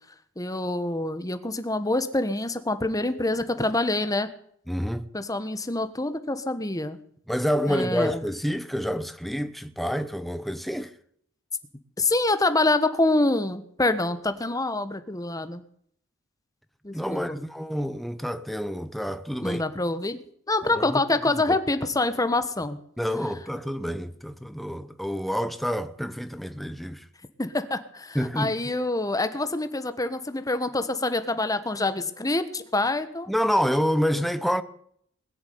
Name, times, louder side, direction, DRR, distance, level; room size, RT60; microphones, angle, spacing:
voice 1, 0.4-4.3 5.1-7.0 7.7-8.2 12.0-15.6 16.8-17.4 19.4-20.2 20.5-22.8 27.4-33.3, left 2 dB, 15° left, 1.2 m, -26 dB
voice 2, 4.7-5.1 7.3-10.9 16.9-19.6 20.9-21.0 23.0-27.0 28.1-28.5 33.3-34.6, equal, ahead, 0.7 m, -28 dB
21.0 x 6.9 x 9.5 m
head